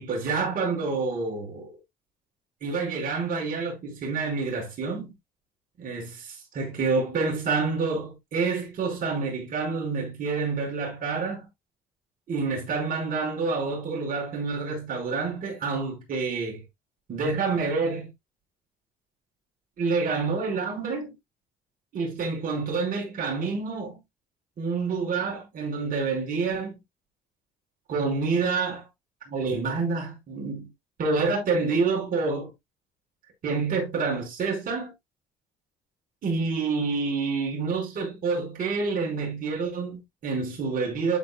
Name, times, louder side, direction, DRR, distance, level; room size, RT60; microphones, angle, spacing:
voice 1, 0.0-1.7 2.6-5.1 5.8-11.5 12.3-16.6 17.1-18.1 19.8-21.1 21.9-24.0 24.6-26.7 27.9-28.9 29.3-30.7 31.0-32.5 33.4-34.9 36.2-41.2, right 4 dB, 55° right, 4.9 m, -28 dB
12.0 x 4.6 x 2.3 m
cardioid pair, 110°, 17 cm